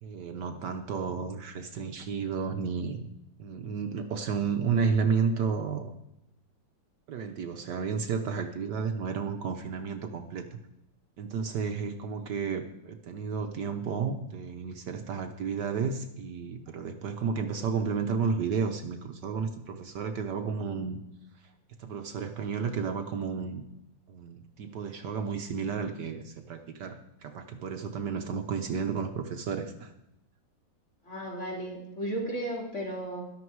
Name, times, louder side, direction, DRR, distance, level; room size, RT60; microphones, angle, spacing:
voice 1, 0.0-3.1 3.4-5.9 7.1-10.5 11.2-21.0 21.8-23.6 24.1-29.9, right 5 dB, 65° right, 6 dB, 1.5 m, -32 dB
voice 2, 31.0-33.2, right 1 dB, 35° left, -1 dB, 3.4 m, -34 dB
13.5 x 11.5 x 4.7 m, 0.84 s
omnidirectional pair, 2.1 m